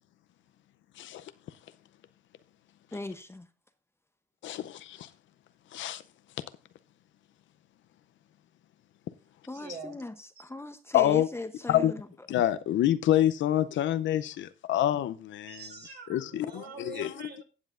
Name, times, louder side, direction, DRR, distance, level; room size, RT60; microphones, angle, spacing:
voice 1, 1.0-1.3 4.4-5.1 5.7-6.0 10.9-11.3 11.7-11.9 12.3-15.6 16.1-17.1, left 12 dB, 75° left, 0.6 m, -27 dB
voice 2, 2.9-3.5 9.5-12.1, left 2 dB, 10° left, 0.8 m, -39 dB
voice 3, 9.5-10.0 15.5-17.4, right 5 dB, 55° right, 2.9 m, -44 dB
16.5 x 7.3 x 2.5 m
cardioid pair, 90°, 20 cm